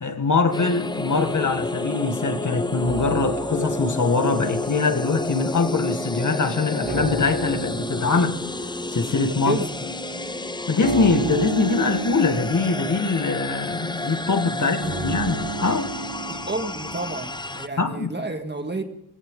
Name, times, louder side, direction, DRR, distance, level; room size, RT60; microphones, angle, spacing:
voice 1, 0.0-8.4 8.9-9.6 10.7-14.8 15.0-15.9 17.8-18.1, left 4 dB, 50° left, 1.9 m, -23 dB
sound 1, 0.5-17.7, left 2 dB, 10° left, 0.6 m, -30 dB
sound 2, 0.8-5.6 5.9-17.5, right 3 dB, 85° right, 3.0 m, -34 dB
voice 2, 9.4-9.8 14.5-15.1 16.3-18.8, right 2 dB, 25° right, 2.0 m, -31 dB
21.0 x 17.0 x 3.9 m
wide cardioid pair, 130°, 38 cm